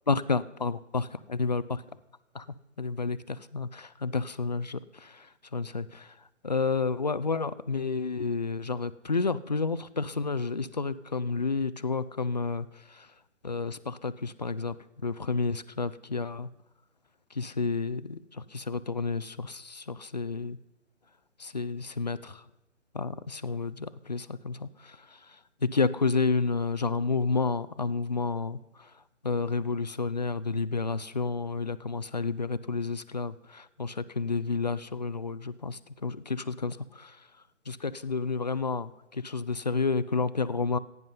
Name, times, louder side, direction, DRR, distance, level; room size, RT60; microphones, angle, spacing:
voice 1, 0.1-1.8 2.3-13.1 13.4-16.5 17.3-20.6 21.4-22.5 22.9-37.3 37.7-40.8, left 4 dB, 35° left, 16 dB, 0.4 m, -31 dB
16.5 x 9.4 x 5.3 m, 0.93 s
figure-of-eight pair, 145°, 38 cm